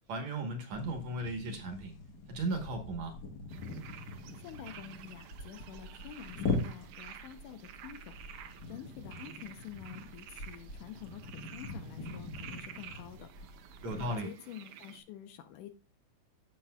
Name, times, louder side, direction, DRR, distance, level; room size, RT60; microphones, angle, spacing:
voice 1, 0.1-1.9 2.3-3.1 13.8-14.3, right 2 dB, 65° right, 4 dB, 2.2 m, -36 dB
sound 1, 0.7-14.2, left 3 dB, 60° left, 1.0 m, -42 dB
sound 2, 3.5-15.0, right 10 dB, 90° right, 2.5 m, -51 dB
voice 2, 4.4-8.2 8.7-11.2 11.5-13.3 13.8-15.7, left 10 dB, 75° left, 9 dB, 2.2 m, -48 dB
15.5 x 6.0 x 2.2 m, 0.31 s
omnidirectional pair, 3.9 m